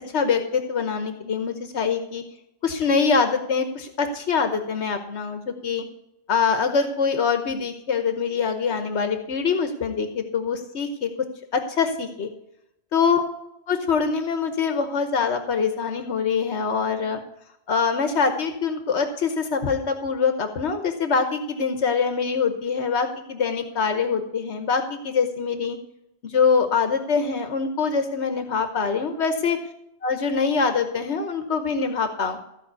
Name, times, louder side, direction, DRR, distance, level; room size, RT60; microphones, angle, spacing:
voice 1, 0.1-2.2 2.6-5.8 6.3-11.1 11.5-12.3 12.9-13.2 13.7-17.2 17.7-25.8 26.2-29.6 30.0-32.4, left 5 dB, 80° left, 7 dB, 1.2 m, -24 dB
14.5 x 5.2 x 8.1 m, 0.83 s
omnidirectional pair, 1.1 m